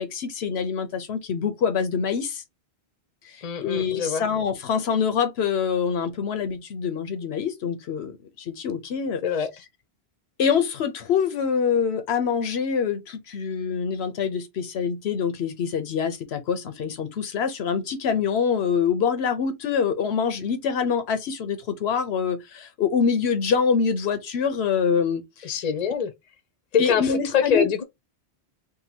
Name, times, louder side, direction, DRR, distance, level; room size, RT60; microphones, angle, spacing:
voice 1, 0.0-2.4 3.2-9.2 10.4-25.7 26.8-27.7, left 6 dB, 75° left, 0.9 m, -25 dB
voice 2, 3.4-4.2 9.2-9.5 25.4-26.1 26.7-27.8, left 7 dB, 45° left, 0.7 m, -24 dB
2.8 x 2.6 x 4.1 m
omnidirectional pair, 1.1 m